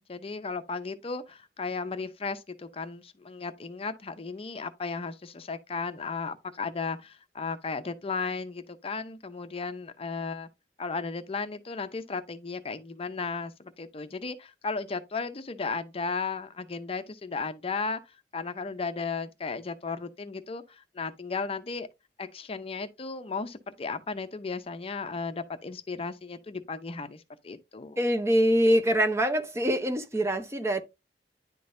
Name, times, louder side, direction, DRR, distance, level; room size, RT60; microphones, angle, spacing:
voice 1, 0.0-10.5 10.8-18.0 18.3-21.9 22.2-28.0, left 4 dB, 35° left, 0.6 m, -35 dB
voice 2, 28.0-30.8, equal, 15° right, 0.6 m, -24 dB
10.5 x 3.8 x 2.5 m
head